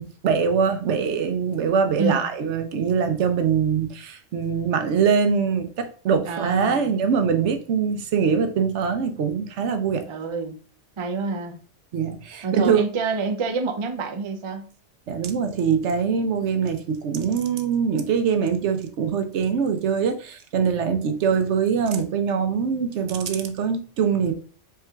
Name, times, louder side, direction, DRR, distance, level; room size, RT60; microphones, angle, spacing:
voice 1, 0.0-10.0 11.9-12.8 15.1-24.3, right 6 dB, 75° right, 0.9 m, -23 dB
voice 2, 6.2-6.9 10.1-10.6 11.0-11.6 12.4-14.7, right 4 dB, 50° right, 0.3 m, -27 dB
4.4 x 3.4 x 2.3 m
omnidirectional pair, 1.3 m